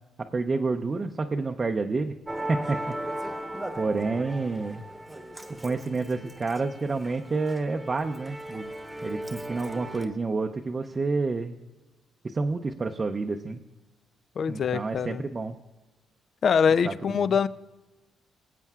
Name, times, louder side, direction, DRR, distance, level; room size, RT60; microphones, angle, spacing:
voice 1, 0.2-2.1 2.5-2.8 3.7-4.8 5.6-8.7 9.0-11.6 12.2-13.6 14.5-15.6 16.8-17.3, right 3 dB, 30° right, 4 dB, 0.6 m, -29 dB
Musical instrument, 2.3-10.1, right 1 dB, 10° right, 1.0 m, -37 dB
voice 2, 14.4-15.2 16.4-17.5, left 6 dB, 55° left, 14 dB, 0.4 m, -23 dB
23.0 x 8.2 x 2.4 m, 1.1 s
cardioid pair, 90°, 0 cm